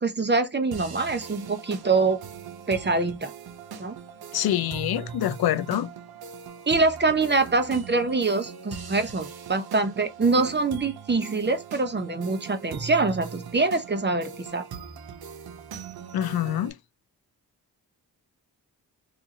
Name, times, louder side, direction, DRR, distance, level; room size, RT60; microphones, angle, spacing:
voice 1, 0.0-2.2 2.7-3.3 3.8-4.0 6.7-14.7, right 3 dB, 25° right, 0.7 m, -24 dB
sound 1, 0.7-16.7, right 7 dB, 60° right, 0.7 m, -41 dB
voice 2, 4.3-5.9 16.1-16.7, left 12 dB, 65° left, 0.5 m, -25 dB
2.7 x 2.5 x 2.7 m
cardioid pair, 45°, 41 cm